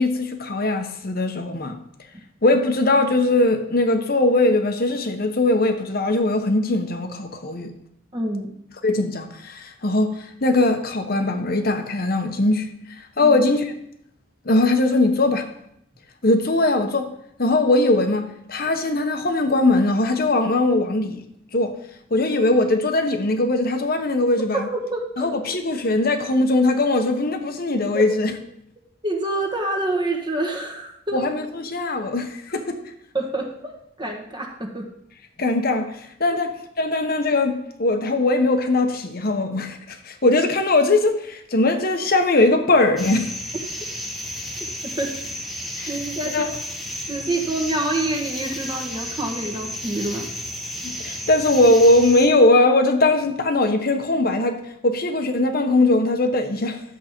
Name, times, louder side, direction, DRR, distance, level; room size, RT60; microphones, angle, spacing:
voice 1, 0.0-1.8 2.4-7.7 8.8-12.7 13.0-13.6 14.4-15.5 16.2-17.1 17.4-21.2 21.5-21.8 22.1-24.7 25.2-28.3 31.1-32.8 35.4-43.3 45.8-45.9 46.3-46.5 50.8-56.8, left 2 dB, 50° left, 1.1 m, -20 dB
voice 2, 8.1-8.5 13.2-13.4 24.5-25.3 27.9-28.0 29.0-31.2 33.1-34.9 45.0-45.2 45.9-46.4 47.1-50.3, right 2 dB, 25° right, 1.4 m, -27 dB
sound 1, 43.0-52.3, equal, ahead, 1.1 m, -32 dB
11.0 x 7.3 x 4.5 m
head